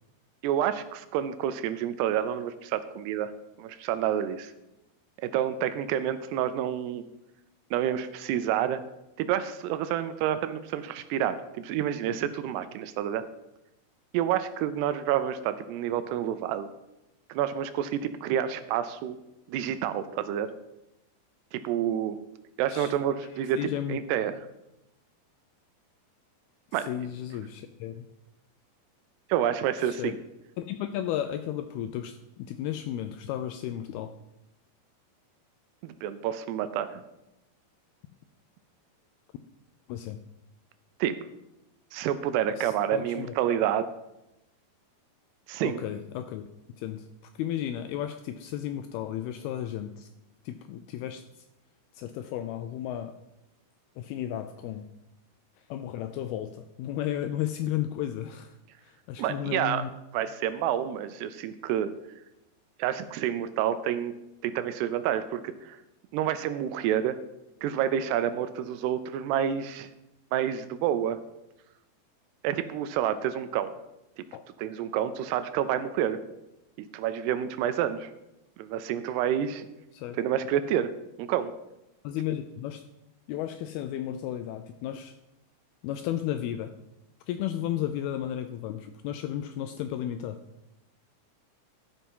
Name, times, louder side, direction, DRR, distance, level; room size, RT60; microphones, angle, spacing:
voice 1, 0.4-3.3 3.6-4.5 5.2-7.0 7.7-8.8 9.2-13.3 14.1-16.7 17.3-19.2 19.5-20.5 21.5-22.2 22.6-24.4 26.7-26.9 29.3-30.2 35.8-37.0 41.0-41.2 41.9-43.9 45.5-45.8 59.2-59.9 60.1-61.9 62.8-64.1 64.4-65.8 66.1-67.2 67.6-69.9 70.3-71.2 72.4-73.7 74.2-74.3 74.6-76.2 76.8-78.1 78.6-79.7 80.2-81.6, right 10 dB, 80° right, 12 dB, 2.5 m, -29 dB
voice 2, 23.6-24.0 26.9-28.0 29.9-30.1 30.6-34.1 39.9-40.2 42.6-43.6 45.6-46.4 46.8-47.0 47.4-50.1 50.5-51.2 51.9-53.1 54.0-54.9 55.7-58.6 58.8-59.9 74.3-74.4 79.9-80.2 82.0-82.8 83.3-85.1 85.8-86.7 87.3-90.4, left 11 dB, 85° left, 8 dB, 2.2 m, -33 dB
13.5 x 5.6 x 5.5 m, 0.91 s
omnidirectional pair, 4.9 m